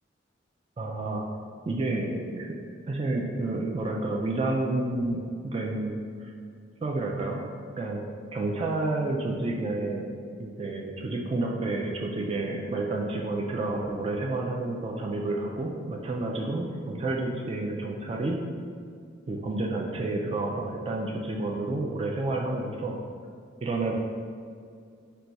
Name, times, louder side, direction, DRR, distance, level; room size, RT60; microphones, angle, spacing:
voice 1, 0.8-1.4 1.7-2.6 2.9-6.3 6.8-7.4 7.8-8.0 8.3-18.4 19.3-23.0 23.6-23.9, right 2 dB, 30° right, -1 dB, 0.3 m, -30 dB
4.5 x 2.3 x 3.9 m, 2.2 s
head